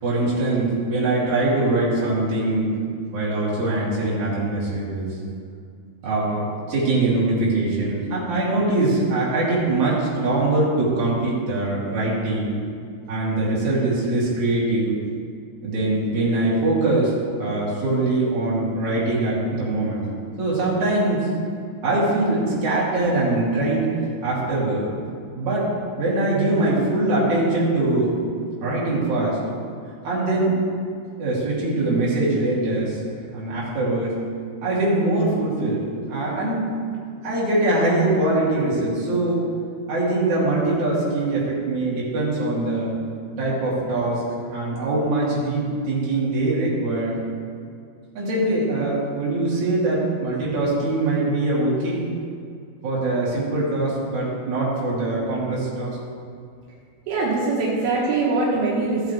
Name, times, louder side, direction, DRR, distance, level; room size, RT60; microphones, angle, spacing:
voice 1, 0.0-2.7 3.1-5.2 6.0-12.6 13.1-15.0 15.6-20.1 20.4-21.3 21.8-23.9 24.2-24.9 25.3-28.1 28.6-29.4 30.0-30.6 31.2-33.0 33.3-34.2 34.6-35.8 36.1-36.7 37.2-39.4 39.9-42.9 43.4-44.2 44.5-47.2 48.2-52.0 52.8-56.0, right 2 dB, 55° right, -8 dB, 4.0 m, -22 dB
voice 2, 57.1-59.1, right 3 dB, 80° right, -5 dB, 3.4 m, -22 dB
16.0 x 8.1 x 3.4 m, 2.3 s
omnidirectional pair, 4.3 m